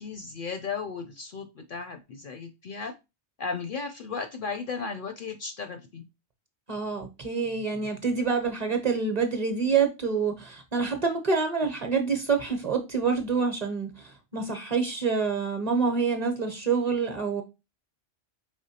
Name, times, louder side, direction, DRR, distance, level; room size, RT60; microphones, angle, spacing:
voice 1, 0.0-2.9 3.4-6.0, left 5 dB, 60° left, 0.6 m, -35 dB
voice 2, 6.7-17.4, right 5 dB, 40° right, 0.7 m, -27 dB
4.9 x 3.4 x 2.7 m
omnidirectional pair, 1.2 m